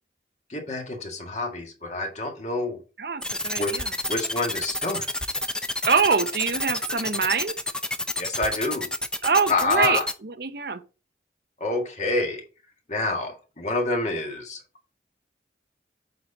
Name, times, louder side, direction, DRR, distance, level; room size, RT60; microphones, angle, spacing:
voice 1, 0.5-2.8 3.6-5.1 8.2-8.9 9.5-10.1 11.6-12.4 12.9-14.6, left 2 dB, 40° left, 1.8 m, -27 dB
voice 2, 3.0-3.9 5.8-7.5 9.2-10.0 10.4-10.8, right 5 dB, 60° right, 0.7 m, -24 dB
sound 1, 3.2-10.1, left 2 dB, 5° left, 0.5 m, -29 dB
7.7 x 4.3 x 3.8 m
head